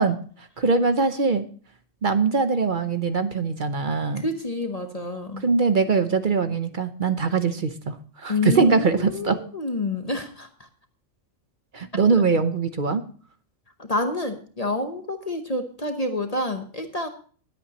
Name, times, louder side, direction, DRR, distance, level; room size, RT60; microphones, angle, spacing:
voice 1, 0.0-1.4 2.0-4.3 5.4-9.4 11.7-13.0, right 4 dB, 45° right, 10 dB, 0.8 m, -22 dB
voice 2, 4.2-5.4 8.3-10.5 13.8-17.1, left 2 dB, 30° left, 6 dB, 1.0 m, -28 dB
20.0 x 8.5 x 3.0 m, 0.41 s
omnidirectional pair, 1.4 m